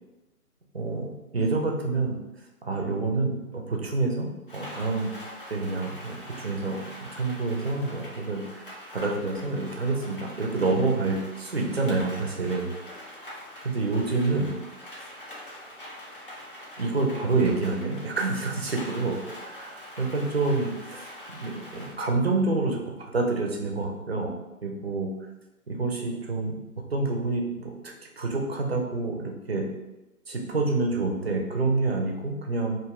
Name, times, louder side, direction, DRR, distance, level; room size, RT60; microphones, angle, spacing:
voice 1, 0.7-2.2 2.6-5.1 5.5-8.6 8.9-12.7 13.6-14.5 15.0-15.1 16.8-19.2 19.4-21.0 21.3-24.3 24.6-25.1 25.7-26.6 26.9-29.6 30.3-32.8, right 3 dB, 45° right, 1 dB, 0.5 m, -28 dB
Rain, 4.5-21.9, left 1 dB, 40° left, 0.5 m, -43 dB
2.6 x 2.0 x 3.5 m, 1.0 s
hypercardioid pair, 165°, 44 cm